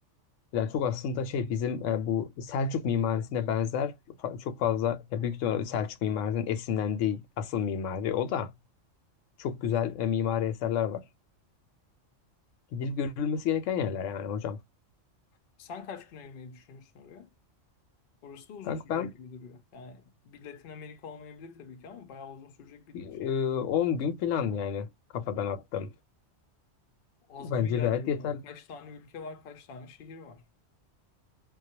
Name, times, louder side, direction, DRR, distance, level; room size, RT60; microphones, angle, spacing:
voice 1, 0.5-8.5 9.4-11.1 12.7-14.6 18.7-19.1 22.9-25.9 27.4-28.4, left 8 dB, 80° left, 0.9 m, -30 dB
voice 2, 15.6-17.3 18.2-23.4 27.3-30.4, left 5 dB, 60° left, 0.6 m, -45 dB
2.3 x 2.0 x 2.8 m
omnidirectional pair, 1.3 m